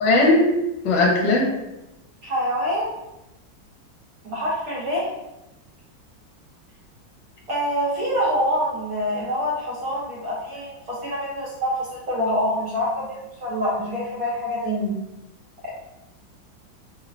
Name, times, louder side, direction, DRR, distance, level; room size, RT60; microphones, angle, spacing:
voice 1, 0.0-0.5 0.8-1.5, left 2 dB, 75° left, 0 dB, 1.2 m, -17 dB
voice 2, 2.2-2.9 4.2-5.1 7.5-14.9 15.6-15.7, equal, 60° right, -6 dB, 1.0 m, -26 dB
3.1 x 2.0 x 2.4 m, 0.92 s
omnidirectional pair, 2.0 m